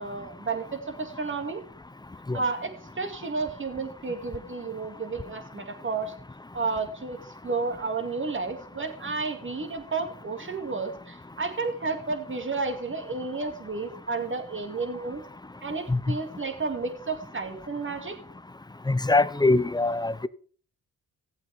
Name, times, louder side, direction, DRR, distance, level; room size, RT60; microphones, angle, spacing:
voice 1, 0.0-1.6 2.3-6.1 6.5-15.2 15.6-18.2, right 4 dB, 30° right, 2.4 m, -32 dB
voice 2, 18.9-20.3, left 2 dB, 10° left, 0.6 m, -23 dB
15.5 x 7.8 x 3.5 m
supercardioid pair, 60°, 38 cm